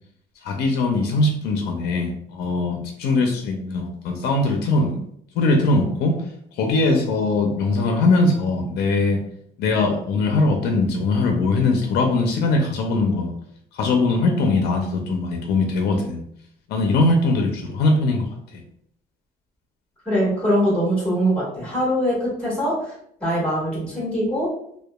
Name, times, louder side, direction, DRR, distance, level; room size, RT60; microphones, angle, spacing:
voice 1, 0.4-5.0 5.4-6.2 6.5-9.2 9.6-13.3 13.7-16.2 16.7-18.6, left 2 dB, 75° left, 3 dB, 0.5 m, -21 dB
voice 2, 20.0-22.9 23.2-24.5, equal, 5° left, -7 dB, 1.5 m, -22 dB
2.8 x 2.2 x 2.2 m, 0.68 s
cardioid pair, 110°, 17 cm